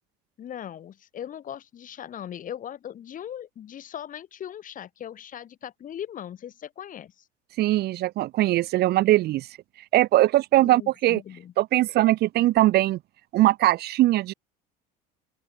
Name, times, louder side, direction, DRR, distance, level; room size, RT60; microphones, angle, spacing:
voice 1, 0.4-7.2 10.5-11.5, left 10 dB, 40° left, 3.3 m, -39 dB
voice 2, 7.6-9.5 9.9-11.2 11.6-13.0 13.3-14.3, right 15 dB, 55° right, 1.0 m, -21 dB
open air
supercardioid pair, 105°, 20 cm